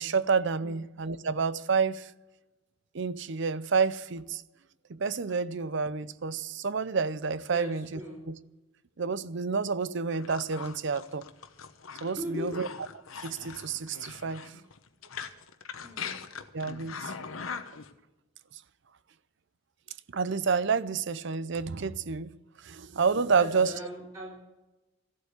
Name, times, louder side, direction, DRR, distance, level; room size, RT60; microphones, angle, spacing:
voice 1, 0.0-2.1 2.9-4.4 4.9-8.0 8.3-8.4 9.0-11.2 12.0-12.7 13.2-14.5 16.5-17.1 20.1-22.3 22.6-23.7, right 5 dB, 60° right, 0.6 m, -29 dB
voice 2, 7.5-8.2 12.2-12.7 15.8-16.1 23.3-24.3, equal, 25° right, 4.3 m, -39 dB
sound 1, 10.1-17.9, left 6 dB, 85° left, 1.1 m, -41 dB
14.5 x 8.1 x 8.2 m
head